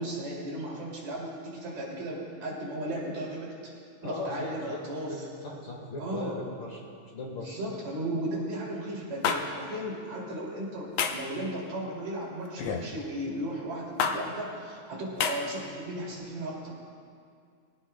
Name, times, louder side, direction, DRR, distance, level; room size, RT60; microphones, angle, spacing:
voice 1, 0.0-3.5 4.0-5.1 6.0-6.4 7.4-16.7, right 1 dB, 65° right, -4 dB, 3.9 m, -35 dB
voice 2, 4.0-4.8 5.1-6.8 7.1-7.6, left 2 dB, 45° left, -2 dB, 2.1 m, -38 dB
sound 1, 9.2-9.4 11.0-11.3 12.6-12.9 14.0-14.2 15.2-15.4, left 6 dB, 70° left, 1.7 m, -27 dB
21.5 x 16.5 x 2.2 m, 2.2 s
omnidirectional pair, 3.5 m